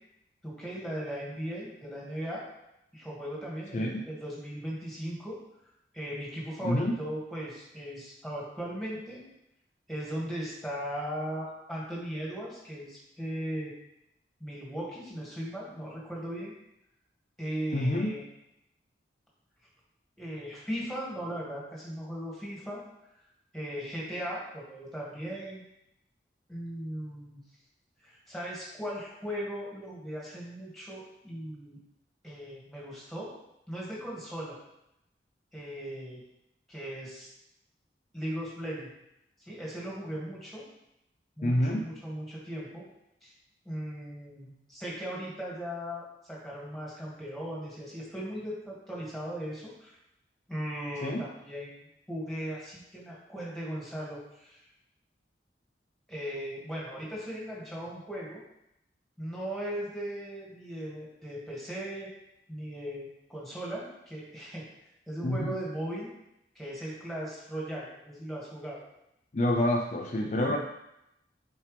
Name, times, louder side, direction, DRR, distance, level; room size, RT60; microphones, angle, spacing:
voice 1, 0.4-2.4 2.9-5.4 5.9-9.2 9.9-13.7 14.4-16.5 17.4-18.2 20.2-22.8 23.5-25.6 26.5-27.4 28.0-31.8 32.2-33.3 33.7-34.6 35.5-36.2 36.7-37.3 38.1-38.9 39.5-40.6 41.4-42.8 43.2-43.3 43.7-49.9 50.5-54.6 56.1-58.4 59.2-62.1 62.5-64.6 65.1-66.1 66.6-68.8, equal, ahead, -6 dB, 2.0 m, -38 dB
voice 2, 3.7-4.0 6.6-6.9 17.7-18.1 41.4-41.9 51.0-51.2 65.2-65.6 69.3-70.6, left 1 dB, 40° left, 0 dB, 0.5 m, -27 dB
8.1 x 4.5 x 3.3 m, 0.83 s
head